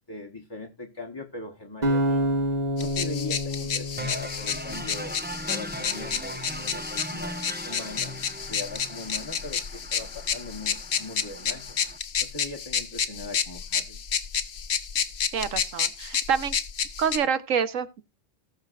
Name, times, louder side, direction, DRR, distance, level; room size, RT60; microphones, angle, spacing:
voice 1, 0.0-2.2 2.8-11.8 12.2-14.0, left 3 dB, 20° left, 1.1 m, -40 dB
sound 1, 1.8-5.0, equal, 35° right, 1.8 m, -28 dB
sound 2, 2.8-17.2, left 7 dB, 80° left, 1.4 m, -30 dB
sound 3, 4.0-12.0, equal, 10° right, 0.8 m, -38 dB
voice 2, 15.3-16.6 17.0-18.0, right 7 dB, 85° right, 1.4 m, -27 dB
19.0 x 6.6 x 2.5 m
omnidirectional pair, 1.3 m